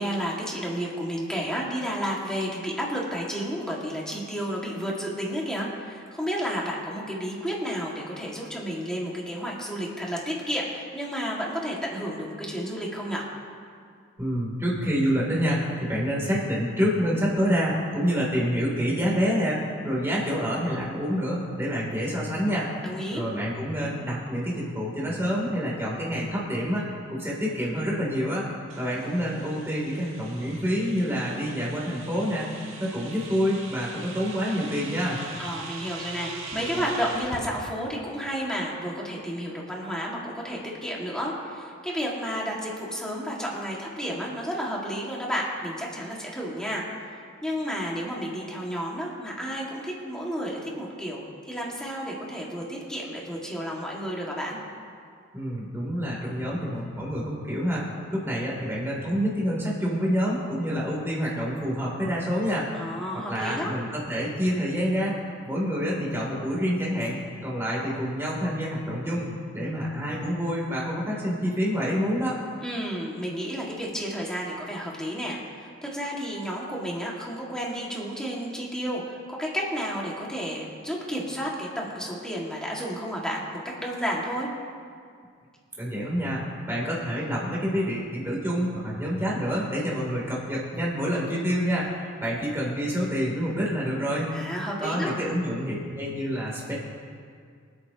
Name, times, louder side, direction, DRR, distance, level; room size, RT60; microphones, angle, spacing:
voice 1, 0.0-13.3 22.8-23.2 35.4-46.9 47.4-54.6 62.7-63.7 72.6-84.5 94.3-95.1, equal, 5° left, -4 dB, 2.1 m, -31 dB
voice 2, 14.2-22.7 23.1-28.5 28.8-32.5 32.8-35.2 55.3-57.8 58.1-62.7 63.3-65.2 65.4-72.4 85.8-86.4 86.7-94.3 94.8-96.7, equal, 10° right, -5 dB, 3.1 m, -27 dB
sound 1, 28.7-37.5, right 3 dB, 85° right, 1.6 m, -41 dB
25.5 x 8.7 x 3.0 m, 2.2 s
head